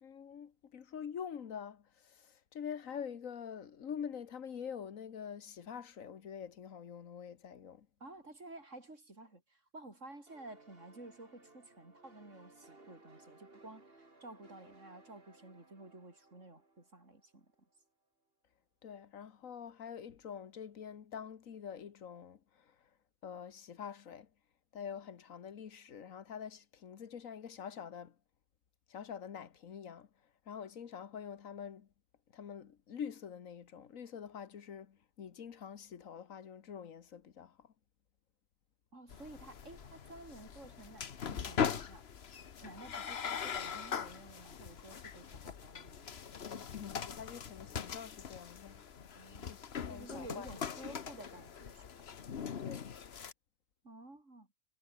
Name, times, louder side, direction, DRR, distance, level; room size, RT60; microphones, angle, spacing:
voice 1, 0.0-7.9 18.8-22.7 23.2-24.3 24.7-28.1 28.9-30.1 30.5-31.9 32.3-37.7 46.4-48.8 49.5-50.5 52.6-52.9, left 7 dB, 80° left, 1.6 m, -46 dB
voice 2, 8.0-17.5 38.9-42.1 42.6-46.4 49.1-49.6 49.9-51.9 53.8-54.5, right 2 dB, 65° right, 5.7 m, -52 dB
sound 1, 10.3-17.7, right 2 dB, 45° right, 3.8 m, -61 dB
sound 2, 39.1-53.3, left 7 dB, 50° left, 1.3 m, -41 dB
omnidirectional pair, 1.4 m